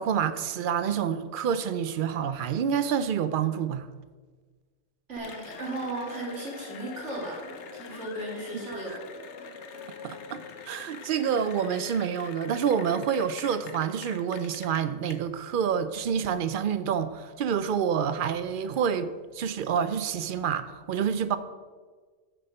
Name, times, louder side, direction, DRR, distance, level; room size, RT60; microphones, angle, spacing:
voice 1, 0.0-3.9 8.9-9.0 10.0-21.4, right 7 dB, 60° right, 12 dB, 0.6 m, -28 dB
voice 2, 5.1-9.0, right 2 dB, 85° right, -2 dB, 2.3 m, -36 dB
Cheering / Applause, 5.2-15.1, left 5 dB, 75° left, 1.1 m, -44 dB
6.6 x 6.3 x 5.4 m, 1.4 s
omnidirectional pair, 1.2 m